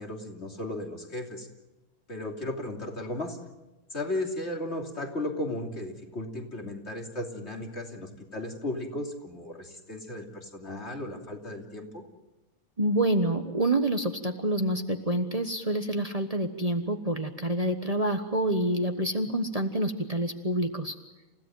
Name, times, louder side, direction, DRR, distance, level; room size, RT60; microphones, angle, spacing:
voice 1, 0.0-1.5 2.1-3.4 3.9-12.0, left 1 dB, 50° left, 2 dB, 3.3 m, -35 dB
voice 2, 12.8-20.9, right 1 dB, 25° right, 6 dB, 1.3 m, -27 dB
29.0 x 16.5 x 9.1 m, 1.1 s
omnidirectional pair, 1.5 m